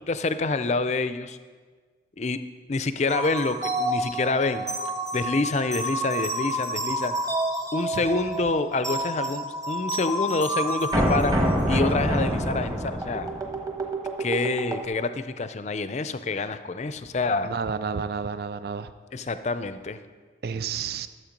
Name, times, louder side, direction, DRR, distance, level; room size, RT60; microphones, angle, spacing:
voice 1, 0.1-1.4 2.2-2.4 2.7-4.7 5.1-7.2 7.7-11.4 11.7-13.3 14.2-17.5 19.1-20.0, left 3 dB, 40° left, 11 dB, 0.5 m, -27 dB
sound 1, 3.1-14.9, right 1 dB, 20° right, 1.2 m, -28 dB
voice 2, 17.4-18.9 20.4-21.1, right 6 dB, 55° right, 12 dB, 0.4 m, -30 dB
13.0 x 7.7 x 5.2 m, 1.5 s
head